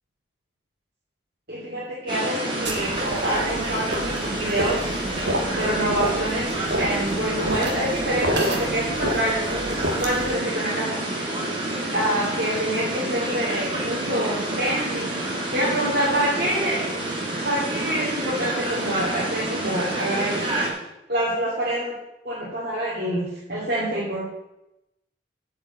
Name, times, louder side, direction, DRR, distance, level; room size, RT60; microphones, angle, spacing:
voice 1, 1.5-5.0 5.5-11.0 11.9-15.2 15.5-16.8 17.4-20.4 21.1-21.9 22.2-24.2, right 1 dB, 55° right, -7 dB, 2.8 m, -26 dB
sound 1, 2.1-20.7, right 1 dB, 25° right, 2.3 m, -28 dB
sound 2, 2.7-10.4, equal, 70° right, 1.7 m, -30 dB
8.7 x 5.7 x 8.1 m, 0.89 s
head